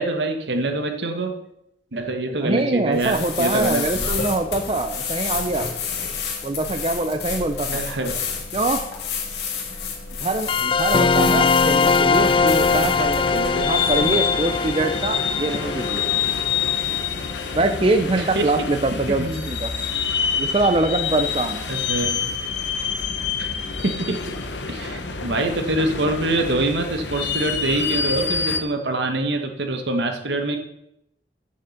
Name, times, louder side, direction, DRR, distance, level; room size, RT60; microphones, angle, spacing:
voice 1, 0.0-1.4 1.9-4.1 7.7-8.1 18.3-18.7 19.1-19.4 21.7-22.2 23.4-23.5 23.8-24.4 24.7-30.6, right 2 dB, 80° right, 6 dB, 1.2 m, -25 dB
voice 2, 2.3-5.7 6.4-7.8 8.5-8.8 10.2-16.0 17.5-19.7 20.4-21.6, right 2 dB, 30° right, 8 dB, 0.6 m, -23 dB
sound 1, 2.9-14.2, left 5 dB, 70° left, 1.9 m, -30 dB
sound 2, 10.5-17.6, left 5 dB, 30° left, 0.3 m, -21 dB
sound 3, 12.1-28.6, left 6 dB, 85° left, 1.1 m, -27 dB
7.5 x 7.1 x 6.4 m, 0.81 s
head